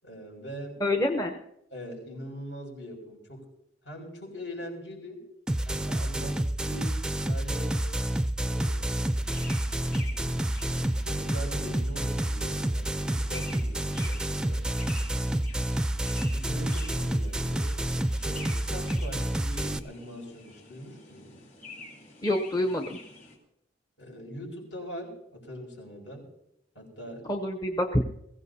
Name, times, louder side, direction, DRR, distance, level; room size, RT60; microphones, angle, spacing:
voice 1, 0.0-0.8 1.7-3.5 3.8-5.3 5.6-7.8 8.4-9.1 11.0-14.7 16.3-17.7 18.1-21.4 24.0-26.3 26.7-27.4, equal, 70° left, 1 dB, 5.9 m, -42 dB
voice 2, 0.8-1.4 22.2-23.0 27.3-28.0, left 1 dB, 20° left, 3 dB, 0.8 m, -27 dB
sound 1, 5.5-19.8, right 1 dB, 5° right, 0.4 m, -29 dB
sound 2, 9.0-23.4, left 2 dB, 40° left, 3.8 m, -48 dB
22.0 x 15.5 x 2.8 m, 0.80 s
head